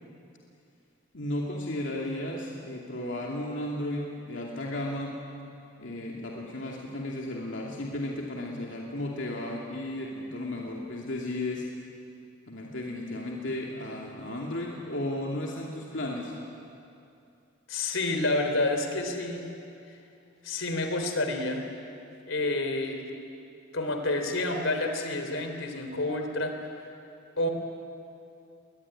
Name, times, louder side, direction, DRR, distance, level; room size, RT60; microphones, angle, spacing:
voice 1, 1.1-5.2 5.8-11.7 12.5-16.4, left 1 dB, 70° left, -2 dB, 2.7 m, -34 dB
voice 2, 17.7-19.5 20.4-21.6 22.3-23.1 23.7-26.5 27.4-27.5, left 2 dB, 85° left, 5 dB, 3.3 m, -29 dB
22.5 x 20.0 x 9.9 m, 2.6 s
head